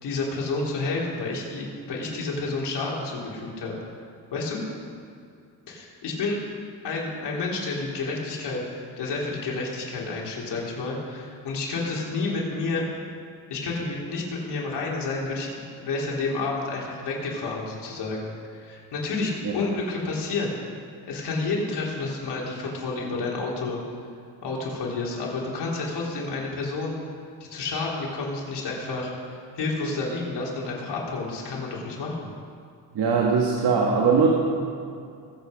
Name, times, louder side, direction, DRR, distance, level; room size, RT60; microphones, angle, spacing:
voice 1, 0.0-3.7 4.3-4.6 5.7-6.4 6.8-12.9 13.5-20.5 21.1-23.8 24.4-26.9 27.4-32.3, left 3 dB, 80° left, -3 dB, 3.6 m, -30 dB
voice 2, 33.0-34.3, right 5 dB, 75° right, -2 dB, 1.9 m, -20 dB
21.5 x 8.4 x 5.2 m, 2.4 s
cardioid pair, 100°, 40 cm